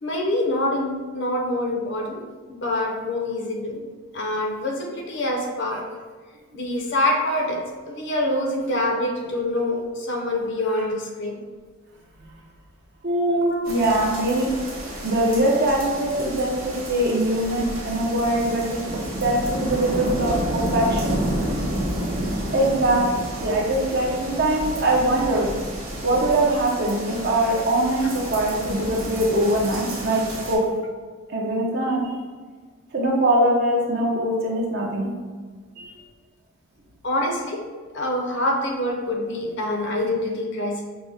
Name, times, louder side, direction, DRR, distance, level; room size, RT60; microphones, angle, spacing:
voice 1, 0.0-2.2 2.5-3.8 4.1-5.9 6.5-11.4 13.5-13.7 37.0-37.6 37.9-40.8, left 1 dB, 55° left, 1 dB, 0.7 m, -25 dB
voice 2, 13.0-14.5 15.0-18.8 19.2-21.2 22.5-23.0 23.4-25.5 26.0-30.7 31.3-32.1 32.9-35.1 35.8-35.9, right 1 dB, 50° right, -2 dB, 0.8 m, -22 dB
sound 1, 13.6-30.6, right 1 dB, 75° right, 1.3 m, -30 dB
5.9 x 2.1 x 3.4 m, 1.5 s
head